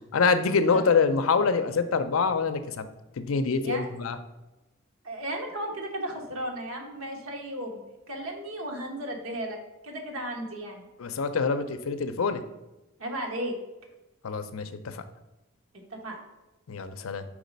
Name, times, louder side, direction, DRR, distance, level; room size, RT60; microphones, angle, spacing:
voice 1, 0.1-2.8 3.2-4.2 11.0-12.4 14.2-14.7 16.7-17.2, left 5 dB, 75° left, 10 dB, 0.5 m, -25 dB
voice 2, 5.0-7.8 8.1-9.6 9.8-10.8 13.0-13.5 15.9-16.2, right 1 dB, 80° right, 1 dB, 1.3 m, -34 dB
4.9 x 4.0 x 5.2 m, 1.0 s
head